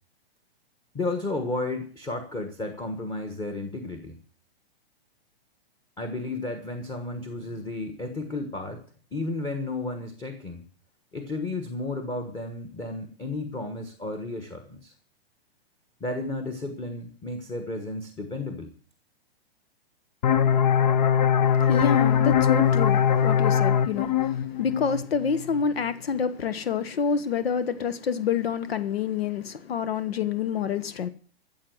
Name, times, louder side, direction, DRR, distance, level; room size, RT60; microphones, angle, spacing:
voice 1, 0.9-4.2 6.0-8.8 9.1-10.6 11.1-14.9 16.0-18.7, left 2 dB, 10° left, 1.2 m, -33 dB
sound 1, 20.2-25.6, left 8 dB, 45° left, 0.9 m, -22 dB
voice 2, 21.5-31.1, left 6 dB, 75° left, 1.3 m, -28 dB
14.0 x 7.7 x 7.8 m
hypercardioid pair, 150°, 31 cm